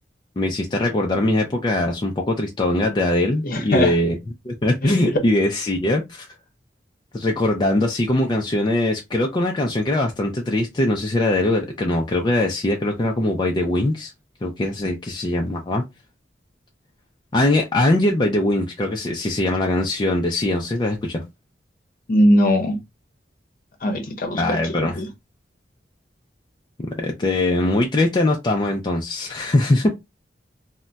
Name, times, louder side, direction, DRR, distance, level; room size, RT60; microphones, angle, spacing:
voice 1, 0.4-4.2 4.4-6.3 7.1-14.1 14.4-15.8 17.3-21.2 24.3-25.0 26.8-29.9, left 1 dB, 25° left, 0.4 m, -21 dB
voice 2, 3.4-3.9 4.8-5.2 22.1-22.8 23.8-25.1, equal, 50° left, 0.8 m, -20 dB
2.2 x 2.1 x 3.8 m
head